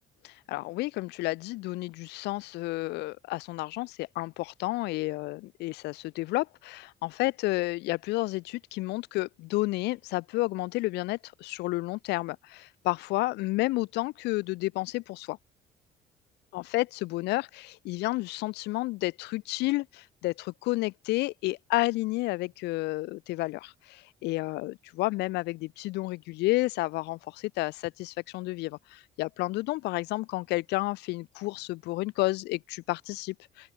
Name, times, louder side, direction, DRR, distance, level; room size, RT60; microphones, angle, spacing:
voice 1, 0.2-15.4 16.5-33.7, left 20 dB, 90° left, 1.5 m, -31 dB
open air
cardioid pair, 110°, 17 cm